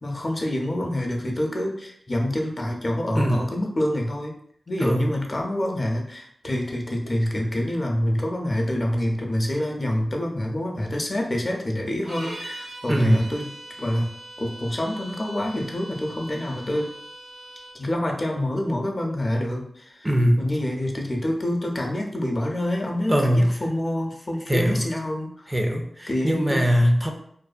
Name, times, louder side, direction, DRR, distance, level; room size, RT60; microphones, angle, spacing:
voice 1, 0.0-4.3 4.7-13.5 13.8-14.1 14.4-16.9 17.7-20.1 20.4-25.5 26.1-26.6, left 1 dB, 40° left, 1 dB, 0.5 m, -26 dB
voice 2, 4.8-5.1 12.9-13.3 20.0-20.5 23.1-23.6 24.5-24.8 25.5-27.1, equal, 20° right, 2 dB, 0.4 m, -21 dB
sound 1, 12.0-17.8, right 1 dB, 85° right, 1.2 m, -41 dB
2.6 x 2.1 x 2.3 m, 0.66 s
cardioid pair, 55°, 0 cm